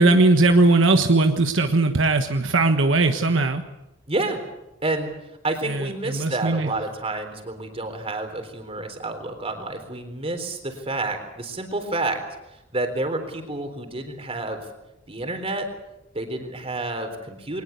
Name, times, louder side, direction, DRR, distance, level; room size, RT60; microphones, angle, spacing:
voice 1, 0.0-3.6 5.6-6.7, right 2 dB, 75° right, 6 dB, 1.4 m, -19 dB
voice 2, 4.1-4.4 4.8-5.1 5.4-12.2 12.7-14.6 15.1-15.7 16.1-17.6, right 2 dB, 30° right, 6 dB, 3.8 m, -29 dB
22.0 x 19.5 x 8.3 m, 0.92 s
head